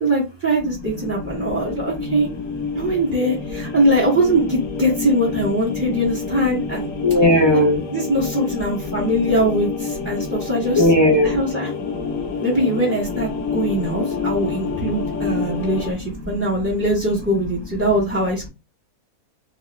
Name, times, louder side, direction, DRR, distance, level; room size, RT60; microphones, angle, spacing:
voice 1, 0.0-2.3 2.7-6.9 7.9-10.9 11.2-11.7 12.4-18.5, right 1 dB, 15° right, -2 dB, 0.5 m, -22 dB
sound 1, 0.8-15.9, left 5 dB, 65° left, 0.9 m, -28 dB
voice 2, 7.0-7.8 10.8-11.4, left 1 dB, 35° left, -1 dB, 0.4 m, -15 dB
3.0 x 2.4 x 3.0 m, 0.27 s
omnidirectional pair, 1.6 m